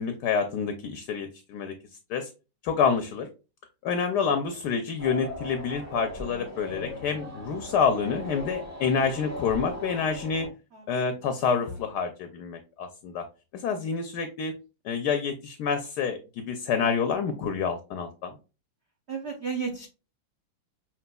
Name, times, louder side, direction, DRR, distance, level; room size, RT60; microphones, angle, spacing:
voice 1, 0.0-1.7 2.1-2.3 2.6-3.3 3.8-10.5 10.9-13.2 13.5-14.5 14.8-18.3, left 6 dB, 70° left, 7 dB, 1.0 m, -28 dB
sound 1, 5.0-10.5, left 1 dB, 10° right, 0.8 m, -38 dB
voice 2, 19.1-19.9, right 5 dB, 85° right, 2 dB, 0.5 m, -33 dB
5.9 x 2.9 x 2.2 m, 0.31 s
omnidirectional pair, 2.1 m